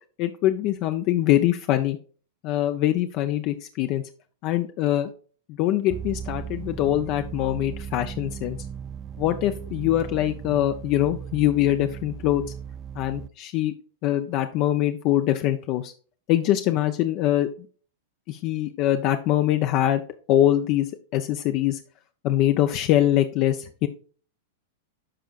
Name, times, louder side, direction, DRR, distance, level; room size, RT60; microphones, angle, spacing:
voice 1, 0.2-2.0 2.4-4.0 4.4-5.1 5.6-8.6 9.2-12.4 12.9-13.7 14.0-15.9 16.3-17.5 18.3-20.0 20.3-21.8 22.2-23.9, left 13 dB, 45° left, 8 dB, 0.5 m, -23 dB
sound 1, 5.9-13.3, right 8 dB, 30° right, 0.3 m, -37 dB
12.5 x 4.6 x 2.4 m, 0.41 s
hypercardioid pair, 125°, 0 cm